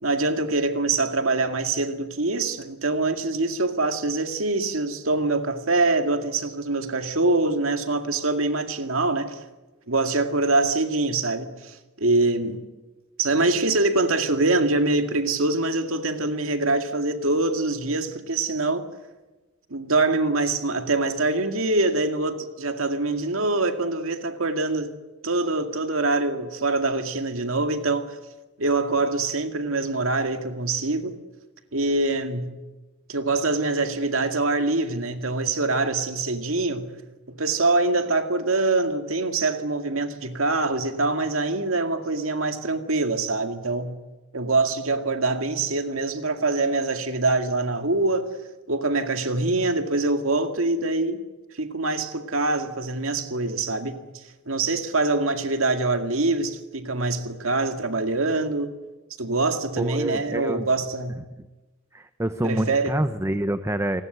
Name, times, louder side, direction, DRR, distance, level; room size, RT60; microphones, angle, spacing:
voice 1, 0.0-9.4 9.9-12.6 13.2-18.9 19.7-24.9 25.2-28.2 28.6-31.2 31.7-32.5 33.1-36.9 37.3-43.9 44.3-48.4 48.7-51.2 51.5-58.8 59.2-61.2 62.4-63.0, right 2 dB, 75° right, 2.1 m, -24 dB
voice 2, 59.8-60.7 61.9-64.0, right 1 dB, 15° right, 0.7 m, -26 dB
28.5 x 20.0 x 8.1 m
head